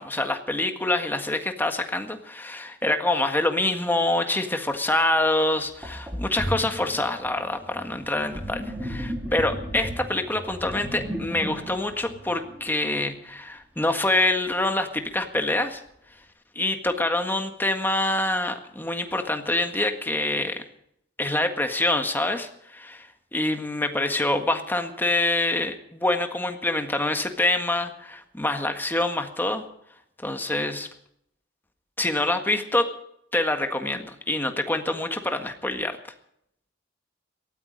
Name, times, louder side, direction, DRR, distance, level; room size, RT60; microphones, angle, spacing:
voice 1, 0.0-15.8 16.5-20.6 21.2-29.6 30.2-30.9 32.0-32.9 33.3-36.0, left 2 dB, 10° left, 6 dB, 1.6 m, -26 dB
Sink (filling or washing), 5.2-5.3 5.8-13.1, equal, 10° right, 2.7 m, -35 dB
18.0 x 14.0 x 5.2 m, 0.74 s
head